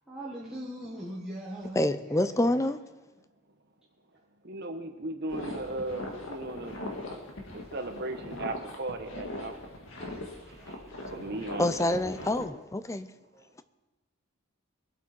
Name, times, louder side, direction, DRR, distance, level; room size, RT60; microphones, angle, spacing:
voice 1, 0.1-2.7 9.9-10.4 11.0-11.1, right 1 dB, 5° right, 1.5 m, -41 dB
voice 2, 1.8-2.8 11.6-13.1, left 1 dB, 15° left, 0.4 m, -27 dB
voice 3, 4.4-6.8 7.7-9.6 10.7-10.8 11.1-12.1, right 2 dB, 50° right, 1.2 m, -36 dB
sound 1, 5.3-12.4, left 1 dB, 60° left, 2.0 m, -40 dB
22.0 x 8.3 x 4.4 m
head